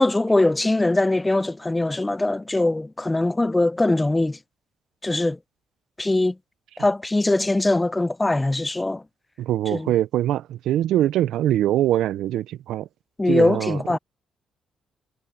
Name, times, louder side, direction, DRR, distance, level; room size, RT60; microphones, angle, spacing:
voice 1, 0.0-4.4 5.0-5.4 6.0-6.4 6.8-9.0 9.7-9.9 13.2-14.0, left 2 dB, 15° left, 0.5 m, -21 dB
voice 2, 9.4-12.9 13.3-13.8, right 12 dB, 80° right, 0.5 m, -23 dB
cardioid pair, 90°, 0 cm